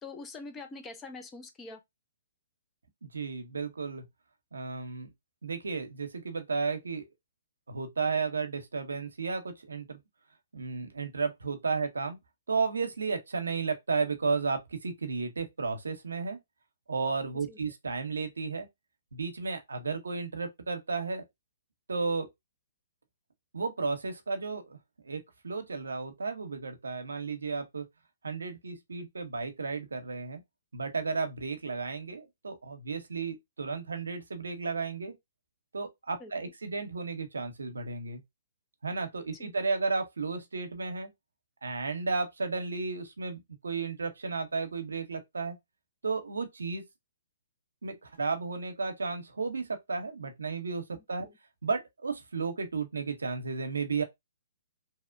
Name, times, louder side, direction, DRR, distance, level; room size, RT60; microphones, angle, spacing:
voice 1, 0.0-1.8 17.5-17.6 36.2-36.5 39.4-39.5 51.0-51.3, left 3 dB, 15° left, 0.4 m, -45 dB
voice 2, 3.0-4.0 4.5-5.1 5.4-7.1 7.7-10.0 10.5-12.2 12.5-16.4 16.9-18.7 19.1-21.2 21.9-22.3 23.5-24.8 25.0-27.9 28.2-30.4 30.7-35.1 35.7-38.2 38.8-41.1 41.6-45.6 46.0-46.8 47.8-51.3 51.6-54.0, right 4 dB, 90° right, 0.6 m, -33 dB
2.8 x 2.1 x 2.4 m
hypercardioid pair, 140°, 0 cm